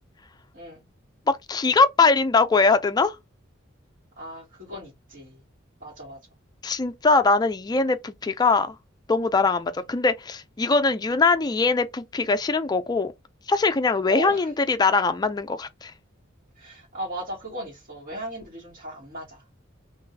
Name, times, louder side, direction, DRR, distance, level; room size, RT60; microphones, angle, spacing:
voice 1, 1.5-3.2 6.6-8.7 9.1-13.1 13.5-15.9, left 4 dB, 20° left, 0.3 m, -22 dB
voice 2, 4.2-5.4 5.8-6.2 14.1-14.4 16.6-19.4, equal, 45° right, 2.4 m, -36 dB
3.8 x 3.2 x 2.6 m
head